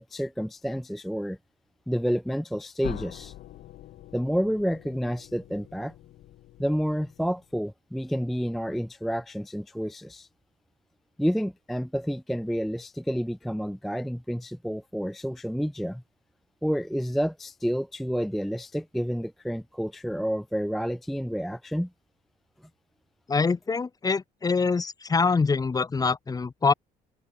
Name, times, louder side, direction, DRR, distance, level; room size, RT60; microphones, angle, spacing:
voice 1, 0.0-1.4 1.9-3.3 4.1-5.9 6.6-10.3 11.2-16.0 16.6-21.9, equal, ahead, 0.3 m, -29 dB
sound 1, 2.8-7.6, left 14 dB, 70° left, 2.3 m, -44 dB
voice 2, 23.3-26.7, left 4 dB, 20° left, 1.0 m, -24 dB
cardioid pair, 110°, 17 cm